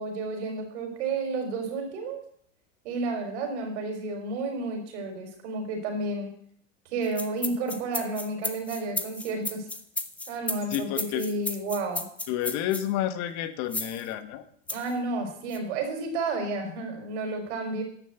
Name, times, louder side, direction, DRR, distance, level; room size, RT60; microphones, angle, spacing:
voice 1, 0.0-2.2 2.8-6.3 6.9-9.6 10.3-12.0 14.7-17.8, right 3 dB, 70° right, 4 dB, 4.5 m, -31 dB
sound 1, 7.0-12.9 13.7-14.0 14.7-14.9 15.5-15.6, left 2 dB, 5° left, 0.4 m, -34 dB
voice 2, 10.7-11.3 12.3-14.4, left 11 dB, 45° left, 12 dB, 1.2 m, -30 dB
12.0 x 6.5 x 8.0 m, 0.63 s
supercardioid pair, 130°, 36 cm